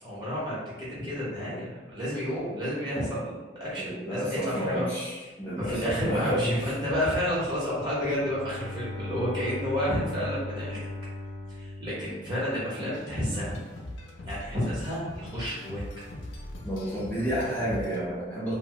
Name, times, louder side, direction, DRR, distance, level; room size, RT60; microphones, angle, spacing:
voice 1, 0.0-4.9 5.6-10.8 11.5-13.6 14.3-15.8, equal, 25° right, -8 dB, 0.9 m, -31 dB
voice 2, 3.8-6.6 16.6-18.5, equal, 10° left, -11 dB, 0.6 m, -30 dB
Bowed string instrument, 8.2-12.9, left 2 dB, 80° right, 0.5 m, -38 dB
sound 1, 12.9-18.0, left 1 dB, 80° left, 0.4 m, -41 dB
2.8 x 2.2 x 2.8 m, 1.3 s
head